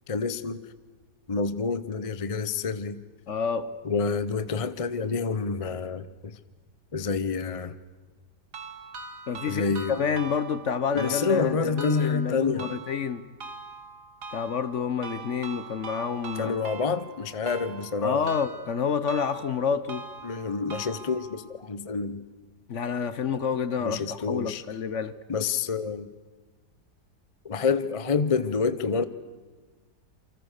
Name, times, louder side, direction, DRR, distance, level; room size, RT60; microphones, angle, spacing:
voice 1, 0.1-0.6 1.3-3.0 3.8-6.4 6.9-7.8 9.4-10.0 10.9-12.7 16.4-18.2 20.2-22.3 23.8-24.6 25.3-26.1 27.4-29.1, left 5 dB, 30° left, 0.6 m, -28 dB
voice 2, 3.3-3.7 9.3-13.2 14.3-16.5 18.0-20.0 22.7-25.1, left 6 dB, 50° left, 1.1 m, -28 dB
sound 1, 8.5-21.5, right 4 dB, 70° right, 2.5 m, -43 dB
28.5 x 25.5 x 6.7 m
omnidirectional pair, 1.8 m